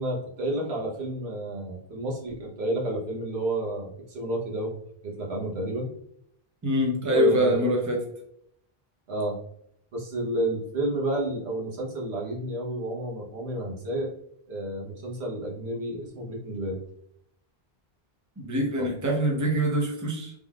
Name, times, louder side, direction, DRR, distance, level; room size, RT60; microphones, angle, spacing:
voice 1, 0.0-5.9 7.0-7.6 9.1-9.4 9.9-14.1 14.5-16.8 18.8-18.9, right 1 dB, 85° right, -3 dB, 1.3 m, -30 dB
voice 2, 6.6-8.0 18.4-20.3, equal, 20° right, -1 dB, 0.7 m, -24 dB
3.7 x 3.3 x 2.3 m, 0.72 s
omnidirectional pair, 1.0 m